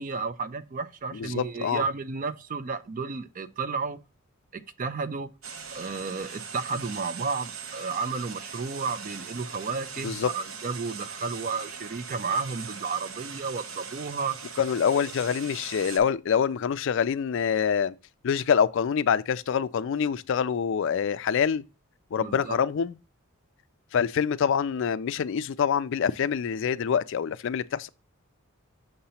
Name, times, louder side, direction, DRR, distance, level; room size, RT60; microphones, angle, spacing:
voice 1, 0.0-4.0 4.5-5.3 5.7-14.4 22.2-22.6, right 4 dB, 40° right, 0.4 m, -32 dB
voice 2, 1.1-1.8 10.0-10.3 14.6-17.9 18.2-21.6 22.1-23.0 23.9-27.9, left 7 dB, 60° left, 0.3 m, -25 dB
sound 1, 5.4-16.0, right 6 dB, 65° right, 0.8 m, -40 dB
6.5 x 2.9 x 5.4 m
head